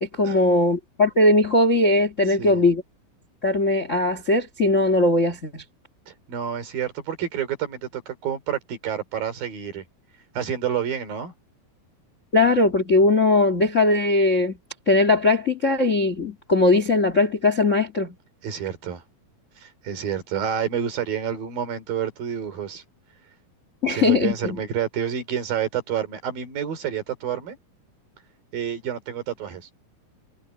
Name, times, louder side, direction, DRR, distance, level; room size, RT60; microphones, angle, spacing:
voice 1, 0.0-2.8 3.4-5.6 12.3-14.6 14.8-18.1 23.8-24.6, left 2 dB, 30° left, 1.4 m, -19 dB
voice 2, 6.1-9.8 10.3-11.3 18.4-19.0 19.6-22.8 23.9-27.6 28.5-29.7, right 8 dB, 70° right, 4.9 m, -29 dB
omnidirectional pair, 4.4 m